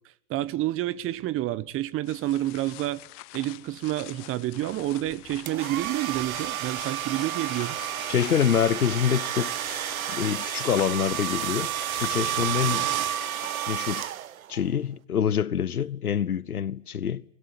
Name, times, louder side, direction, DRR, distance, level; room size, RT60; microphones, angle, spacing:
voice 1, 0.3-3.0 3.3-7.8, right 15 dB, 30° right, 1.2 m, -29 dB
sound 1, 2.0-14.0, left 20 dB, 35° left, 1.0 m, -46 dB
sound 2, 5.5-14.6, right 11 dB, 70° right, 1.3 m, -31 dB
sound 3, 7.2-13.7, left 12 dB, 65° left, 1.8 m, -47 dB
voice 2, 8.1-9.5 10.1-12.9 13.7-14.1 14.5-17.2, left 8 dB, 90° left, 1.0 m, -26 dB
24.5 x 21.0 x 9.9 m
hypercardioid pair, 110°, 43 cm